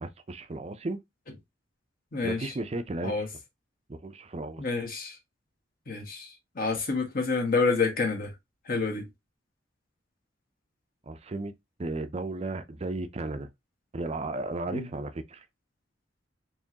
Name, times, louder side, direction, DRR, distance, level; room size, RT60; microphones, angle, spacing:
voice 1, 0.0-1.0 2.2-3.1 3.9-4.6 11.1-11.5 11.8-13.5 13.9-15.4, right 2 dB, 35° right, 0.5 m, -34 dB
voice 2, 2.1-2.5 3.0-3.3 4.6-5.2 5.9-8.3 8.7-9.1 14.7-14.9, left 4 dB, 50° left, 1.3 m, -28 dB
4.4 x 3.2 x 2.8 m
head